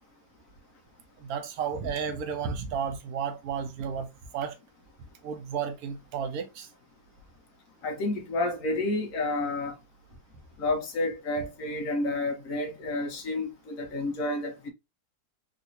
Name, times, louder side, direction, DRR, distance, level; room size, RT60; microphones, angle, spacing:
voice 1, 1.2-4.1 4.3-4.5 5.2-6.7, right 7 dB, 65° right, 1.1 m, -32 dB
voice 2, 7.8-9.8 10.6-14.7, left 2 dB, 60° left, 1.0 m, -30 dB
3.8 x 2.5 x 2.7 m
omnidirectional pair, 1.9 m